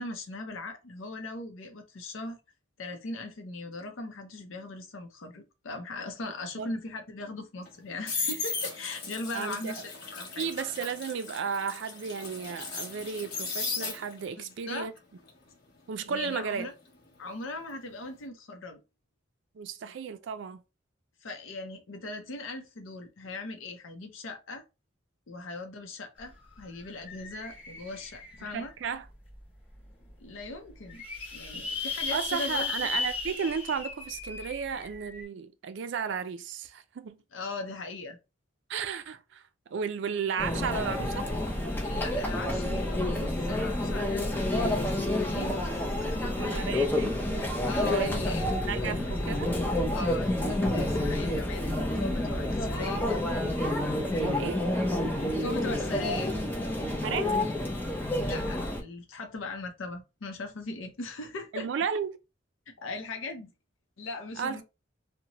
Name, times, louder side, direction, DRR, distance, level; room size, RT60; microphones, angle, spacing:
voice 1, 0.0-2.4 2.8-10.5 14.4-14.9 16.1-16.7 17.2-18.8 21.2-24.6 25.3-28.7 30.2-31.0 31.3-32.9 37.3-38.2 41.8-46.8 47.7-48.5 48.8-49.2 49.9-53.1 55.2-56.4 58.2-61.7 62.8-63.5 64.0-64.6, left 2 dB, 85° left, 0.6 m, -39 dB
sound 1, 7.6-14.4 14.7-17.6 17.9-18.2, left 4 dB, 55° left, 1.0 m, -37 dB
voice 2, 9.3-9.7 10.4-14.9 15.9-16.7 19.5-20.6 28.5-29.1 32.1-37.2 38.7-41.3 46.4-47.5 47.8-48.2 48.7-49.5 52.3-52.4 54.2-54.6 56.8-57.5 61.5-62.2 64.4-64.6, right 6 dB, 65° right, 0.4 m, -34 dB
sound 2, 26.2-26.3 26.6-28.7 29.3-29.4 29.7-29.8 30.0-30.1 30.7-35.2, left 4 dB, 30° left, 0.9 m, -36 dB
Conversation / Chatter / Crowd, 40.4-58.8, left 1 dB, 10° left, 0.4 m, -29 dB
2.6 x 2.1 x 2.8 m
head